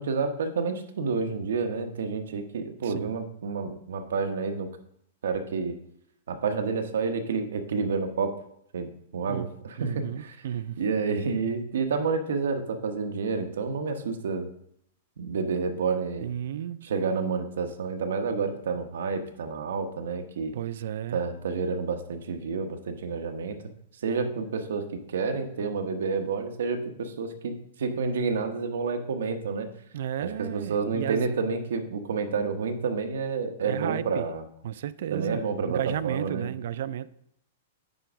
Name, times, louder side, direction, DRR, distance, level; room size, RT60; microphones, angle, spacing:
voice 1, 0.0-4.7 5.2-5.8 6.3-8.3 8.7-10.3 10.8-14.5 15.2-16.3 16.9-20.5 21.1-23.5 24.0-29.7 30.2-34.4 35.1-36.5, right 5 dB, 90° right, 0.9 m, -29 dB
voice 2, 2.8-3.1 9.3-9.5 9.8-10.8 16.2-16.9 20.5-21.2 29.9-31.3 33.6-34.3 34.6-37.1, right 10 dB, 60° right, 0.3 m, -33 dB
9.1 x 3.5 x 5.0 m
supercardioid pair, 170°, 0 cm